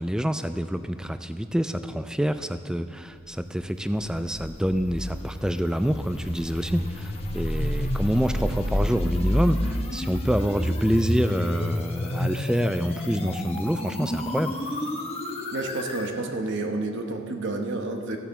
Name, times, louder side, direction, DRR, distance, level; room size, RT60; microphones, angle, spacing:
voice 1, 0.0-14.6, equal, 5° right, 10 dB, 0.3 m, -27 dB
sound 1, 4.0-16.1, left 1 dB, 30° left, 1.1 m, -29 dB
voice 2, 15.5-18.2, right 2 dB, 55° right, 4 dB, 1.0 m, -30 dB
14.0 x 7.4 x 6.9 m, 2.3 s
head